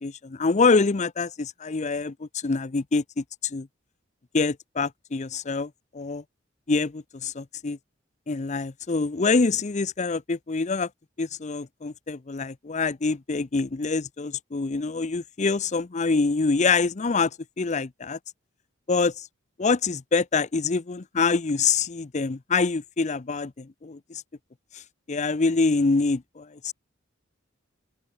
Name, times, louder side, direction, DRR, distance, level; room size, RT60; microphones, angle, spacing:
voice 1, 0.0-3.7 4.3-6.2 6.7-7.8 8.3-10.9 11.2-17.3 17.6-18.2 18.9-19.3 19.6-24.2 24.7-24.8 25.1-26.7, left 4 dB, 35° left, 0.6 m, -25 dB
open air
head